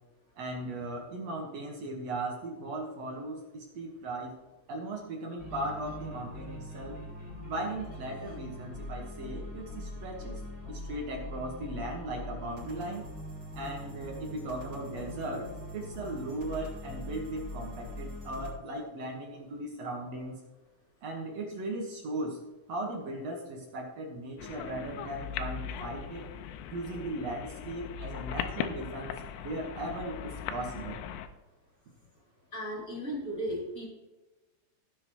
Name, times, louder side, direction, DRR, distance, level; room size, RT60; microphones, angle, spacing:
voice 1, 0.4-4.4 4.7-7.0 7.4-10.4 10.7-13.1 13.5-20.4 21.0-22.4 22.7-26.3 26.7-29.1 29.4-31.0, right 1 dB, 80° right, 0 dB, 1.4 m, -37 dB
sound 1, 5.4-18.5, left 1 dB, 20° right, 4.3 m, -42 dB
sound 2, 24.4-31.3, left 9 dB, 80° left, 3.0 m, -39 dB
voice 2, 32.5-33.9, equal, 20° left, -4 dB, 2.9 m, -35 dB
17.5 x 7.1 x 3.1 m, 1.1 s
omnidirectional pair, 5.5 m